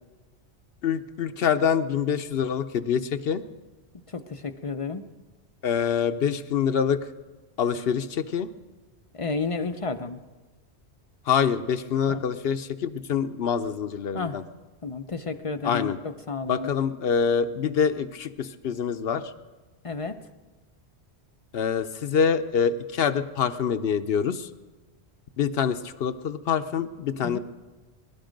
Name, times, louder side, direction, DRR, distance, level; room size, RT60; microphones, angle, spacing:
voice 1, 0.8-3.4 5.6-7.0 7.6-8.5 11.3-14.4 15.6-16.0 16.5-19.3 21.5-24.5 25.4-27.4, left 7 dB, 65° left, 10 dB, 0.9 m, -25 dB
voice 2, 4.1-5.0 9.1-10.2 12.1-12.2 14.1-14.4 14.8-15.9 16.3-16.7 19.8-20.2 27.2-27.4, left 4 dB, 40° left, 8 dB, 0.5 m, -31 dB
22.5 x 11.5 x 5.2 m, 1.2 s
omnidirectional pair, 1.1 m